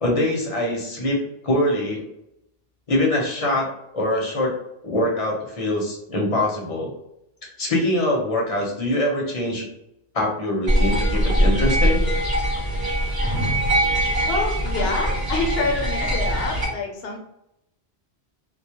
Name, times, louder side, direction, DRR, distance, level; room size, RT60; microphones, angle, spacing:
voice 1, 0.0-2.0 2.9-3.7 3.9-4.5 4.8-6.9 7.6-9.7 10.1-12.1, left 1 dB, 40° left, -2 dB, 0.7 m, -23 dB
sound 1, 10.7-16.6, right 1 dB, 25° right, 0.7 m, -22 dB
voice 2, 14.3-17.2, left 3 dB, 75° left, 1 dB, 0.8 m, -27 dB
2.2 x 2.0 x 2.8 m, 0.82 s
omnidirectional pair, 1.1 m